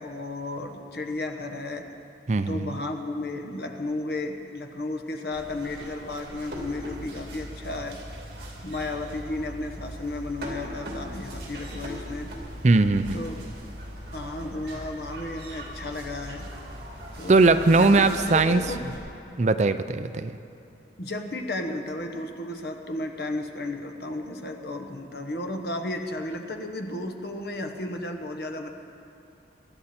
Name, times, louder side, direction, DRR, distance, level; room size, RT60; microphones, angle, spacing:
voice 1, 0.0-1.8 2.5-8.0 8.6-12.3 13.1-13.4 14.1-16.5 17.2-18.8 21.0-28.7, left 2 dB, 60° left, 5 dB, 1.1 m, -33 dB
voice 2, 2.3-2.8 12.6-13.2 17.3-18.6 19.4-20.3, right 3 dB, 40° right, 11 dB, 0.5 m, -20 dB
sound 1, 5.3-19.0, equal, 55° right, 2.7 m, -39 dB
23.5 x 11.0 x 4.3 m, 2.7 s
head